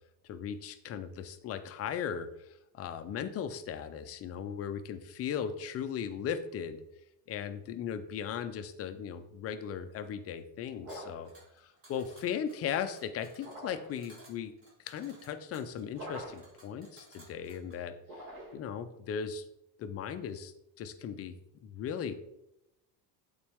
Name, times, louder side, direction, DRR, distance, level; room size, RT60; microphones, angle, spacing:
voice 1, 0.3-2.3 2.7-6.8 7.3-11.3 11.6-14.5 14.8-18.2 18.5-19.4 19.8-21.3 21.6-22.1, left 8 dB, 30° left, 9 dB, 0.5 m, -37 dB
sound 1, 10.8-11.3 13.4-14.0 15.9-16.6 18.0-18.8, right 1 dB, 45° right, 2.0 m, -45 dB
sound 2, 10.9-17.8, right 1 dB, 25° right, 1.8 m, -59 dB
8.4 x 4.1 x 3.5 m, 0.85 s
cardioid pair, 130°, 48 cm